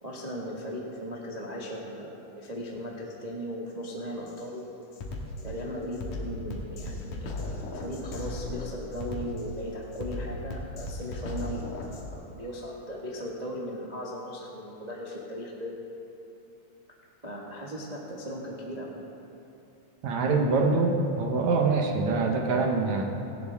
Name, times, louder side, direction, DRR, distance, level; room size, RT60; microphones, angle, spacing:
voice 1, 0.0-4.6 5.4-15.8 17.2-18.9, equal, 30° right, -4 dB, 0.7 m, -37 dB
Drum kit, 4.3-4.4 4.9-12.1, left 2 dB, 85° left, 3.0 m, -37 dB
voice 2, 20.0-23.0, right 3 dB, 70° right, 2 dB, 2.3 m, -24 dB
18.0 x 16.5 x 3.5 m, 2.8 s
omnidirectional pair, 3.6 m